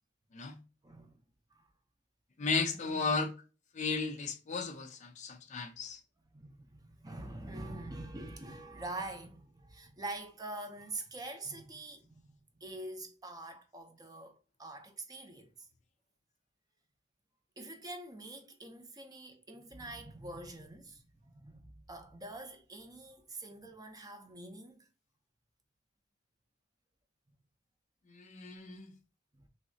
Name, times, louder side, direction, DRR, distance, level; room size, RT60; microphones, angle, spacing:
voice 1, 0.8-1.1 1.5-1.7 2.7-3.0 6.3-12.3 12.6-15.7 17.6-24.9 29.3-29.4, right 2 dB, 20° right, 0.6 m, -45 dB
voice 2, 2.4-3.3 3.7-6.0 28.1-28.9, left 4 dB, 35° left, 0.4 m, -35 dB
3.1 x 2.7 x 2.6 m
head